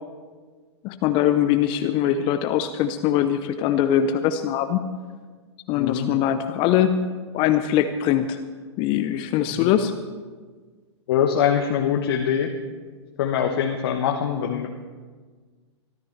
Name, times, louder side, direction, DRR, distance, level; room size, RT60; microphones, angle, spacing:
voice 1, 0.8-4.8 5.7-7.0 7.3-8.4 8.8-9.9, left 10 dB, 35° left, 9 dB, 0.7 m, -22 dB
voice 2, 5.8-6.2 9.6-9.7 11.1-12.5 13.2-14.7, left 8 dB, 55° left, 2 dB, 1.2 m, -23 dB
23.5 x 13.5 x 3.3 m, 1.5 s
figure-of-eight pair, 105°, 15 cm